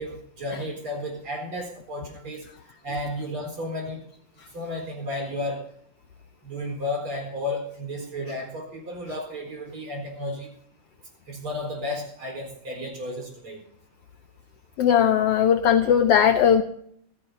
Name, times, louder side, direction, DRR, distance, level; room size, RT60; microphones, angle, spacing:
voice 1, 0.0-2.5 2.8-4.0 4.5-5.6 6.4-10.5 11.3-13.6, left 1 dB, 45° right, 3 dB, 5.0 m, -33 dB
voice 2, 14.8-16.6, left 8 dB, 75° left, 9 dB, 1.5 m, -18 dB
25.0 x 14.5 x 2.8 m, 0.65 s
omnidirectional pair, 3.4 m